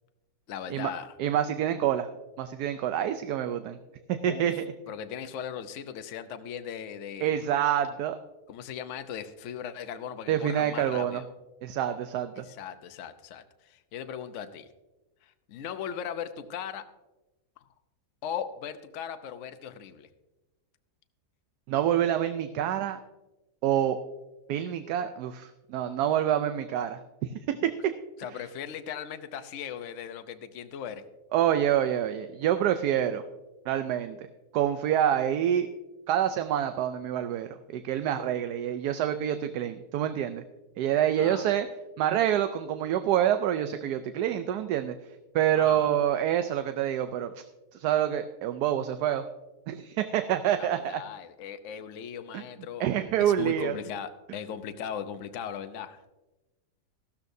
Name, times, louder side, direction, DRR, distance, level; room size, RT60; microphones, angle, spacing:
voice 1, 0.5-1.1 4.2-4.5 4.9-7.4 8.5-11.3 12.4-14.7 15.2-16.8 17.6-17.7 18.2-20.1 28.2-31.0 41.2-41.5 45.6-46.0 50.6-52.9 53.2-56.1, left 8 dB, 60° left, 9 dB, 0.9 m, -38 dB
voice 2, 1.2-2.1 2.4-3.8 4.1-4.7 7.2-8.2 10.3-11.2 11.6-12.5 21.7-23.0 23.6-24.0 24.5-27.9 31.3-33.2 33.7-34.3 34.5-35.7 36.1-40.4 40.8-41.7 42.0-45.0 45.3-47.3 47.7-49.2 49.7-51.0 52.3-52.4 52.8-53.8, right 10 dB, 80° right, 9 dB, 1.1 m, -27 dB
14.5 x 13.0 x 2.7 m, 1.1 s
omnidirectional pair, 1.7 m